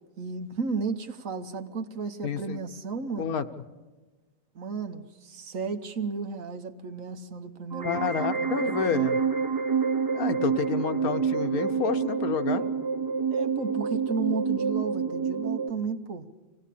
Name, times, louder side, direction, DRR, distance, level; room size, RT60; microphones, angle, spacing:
voice 1, 0.2-3.4 4.5-9.2 13.3-16.3, right 4 dB, 60° right, 1.4 m, -34 dB
voice 2, 2.2-2.6 3.2-3.5 7.8-9.2 10.1-12.6, left 7 dB, 70° left, 1.3 m, -29 dB
sound 1, 7.7-15.7, right 5 dB, 20° right, 0.5 m, -28 dB
25.0 x 17.0 x 8.4 m
omnidirectional pair, 1.7 m